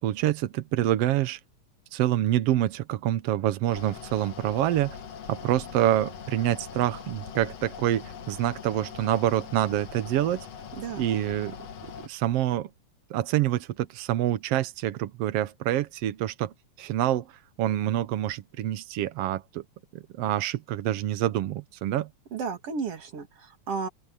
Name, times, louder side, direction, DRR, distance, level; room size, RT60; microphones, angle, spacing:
voice 1, 0.0-1.4 1.9-5.0 5.3-10.5 11.0-11.6 12.0-12.7 13.1-19.6 19.9-22.1, right 13 dB, 70° right, 1.5 m, -27 dB
Mechanical fan, 3.7-12.1, left 7 dB, 55° left, 2.6 m, -42 dB
voice 2, 10.8-11.1 22.3-23.9, right 5 dB, 50° right, 3.2 m, -33 dB
open air
omnidirectional pair, 3.7 m